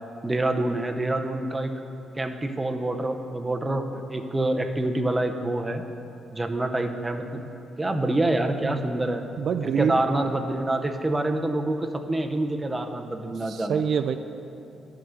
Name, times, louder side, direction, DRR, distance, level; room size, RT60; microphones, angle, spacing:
voice 1, 0.2-1.7 2.1-5.8 6.3-7.5 7.8-9.2 9.6-13.8, right 1 dB, 15° right, 5 dB, 0.7 m, -26 dB
voice 2, 9.4-10.0 13.5-14.2, right 7 dB, 65° right, 8 dB, 0.3 m, -25 dB
11.0 x 3.8 x 7.6 m, 2.7 s
cardioid pair, 90°, 0 cm